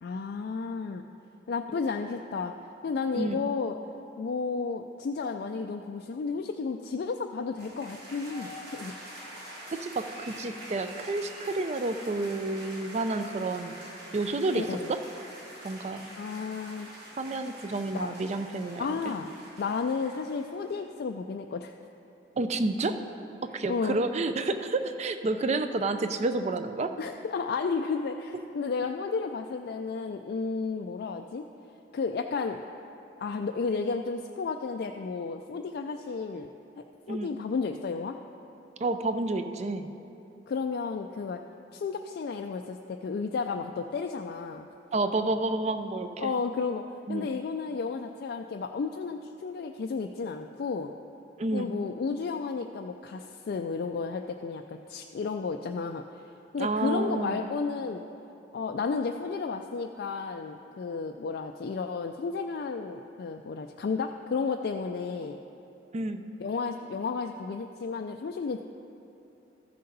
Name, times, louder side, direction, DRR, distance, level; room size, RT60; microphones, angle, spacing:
voice 1, 0.0-1.0 1.5-2.5 2.8-3.8 4.2-8.9 14.5-14.9 16.2-16.9 17.9-18.1 18.8-19.3 19.6-21.7 23.7-24.0 27.0-31.5 31.9-32.6 33.2-36.5 36.8-38.2 40.5-41.4 41.7-44.7 46.2-50.9 51.5-56.0 56.5-58.0 58.5-65.4 66.4-68.6, left 4 dB, 60° left, 4 dB, 0.3 m, -32 dB
sound 1, 7.6-20.8, right 1 dB, 60° right, 2.3 m, -45 dB
voice 2, 9.7-13.8 14.1-15.0 15.6-16.1 17.2-19.0 22.4-23.0 23.4-26.9 37.1-37.3 38.8-39.9 44.9-46.3 47.1-47.3 51.4-51.7 56.6-57.4 65.9-66.2, right 2 dB, 35° right, 9 dB, 0.4 m, -30 dB
14.0 x 6.7 x 3.9 m, 2.8 s
head